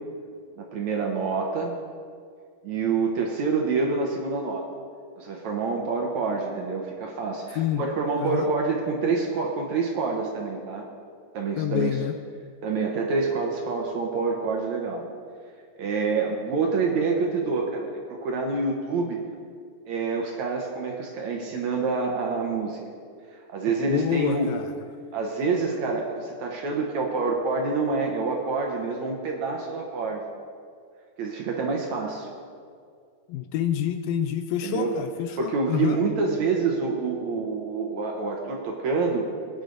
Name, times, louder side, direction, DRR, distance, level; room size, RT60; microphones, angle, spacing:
voice 1, 0.6-1.7 2.6-4.7 5.2-10.8 11.3-12.0 12.6-15.0 15.8-19.2 19.9-22.8 23.3-24.5 25.1-30.2 31.2-32.3 34.6-34.9 35.4-39.3, right 4 dB, 65° right, 0 dB, 2.0 m, -27 dB
voice 2, 7.6-7.9 8.2-8.5 11.6-12.1 23.9-24.7 33.3-36.0, left 10 dB, 80° left, 8 dB, 2.2 m, -27 dB
22.0 x 10.0 x 4.0 m, 2.2 s
omnidirectional pair, 4.4 m